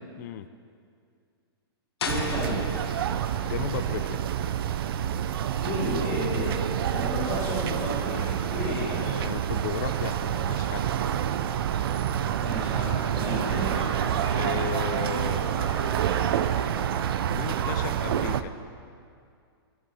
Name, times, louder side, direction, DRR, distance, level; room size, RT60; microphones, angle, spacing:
voice 1, 0.2-0.5 3.2-4.2 8.6-11.0 14.3-15.5 17.3-18.5, left 11 dB, 45° left, 12 dB, 0.4 m, -36 dB
sound 1, 2.0-7.6, left 4 dB, 75° left, 1.2 m, -40 dB
voice 2, 2.0-2.6 5.5-9.0 12.4-13.7, left 1 dB, 15° left, -11 dB, 2.6 m, -32 dB
sound 2, 2.1-18.4, right 10 dB, 60° right, 0.5 m, -28 dB
sound 3, 9.7-16.7, right 2 dB, 90° right, 2.0 m, -39 dB
10.5 x 5.6 x 6.9 m, 2.3 s
hypercardioid pair, 150°, 14 cm